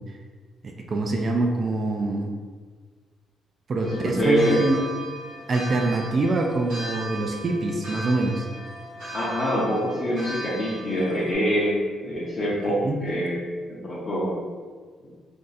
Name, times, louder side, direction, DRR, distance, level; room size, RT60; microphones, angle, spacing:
voice 1, 0.6-2.3 3.7-4.8 5.5-8.4 12.7-13.0, right 2 dB, 45° right, 2 dB, 0.4 m, -25 dB
voice 2, 3.8-4.6 9.1-13.4 13.7-14.4, equal, 40° left, -8 dB, 0.7 m, -25 dB
sound 1, 3.8-11.3, right 2 dB, 80° right, 1.0 m, -37 dB
2.6 x 2.4 x 4.0 m, 1.5 s
cardioid pair, 90°, 0 cm